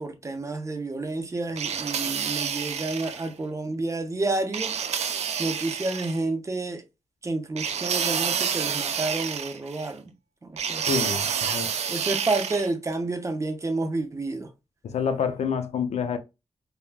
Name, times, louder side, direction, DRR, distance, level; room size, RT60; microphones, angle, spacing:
voice 1, 0.0-4.8 5.4-6.8 7.2-10.1 10.4-10.9 11.9-14.5, right 2 dB, 30° right, 0.5 m, -30 dB
sound 1, 1.6-3.3 4.5-6.2 7.6-9.9 10.6-12.7, right 7 dB, 80° right, 0.4 m, -29 dB
voice 2, 10.9-11.7 14.8-16.2, left 6 dB, 85° left, 0.5 m, -28 dB
3.4 x 2.1 x 2.4 m
wide cardioid pair, 125°, 11 cm